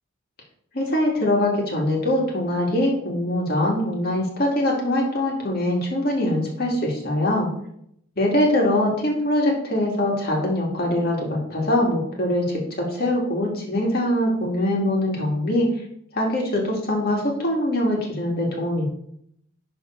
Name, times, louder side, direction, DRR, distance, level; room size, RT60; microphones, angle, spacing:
voice 1, 0.7-7.5 8.2-15.7 16.1-18.9, left 1 dB, 45° left, -2 dB, 2.3 m, -23 dB
11.5 x 4.0 x 4.6 m, 0.72 s
head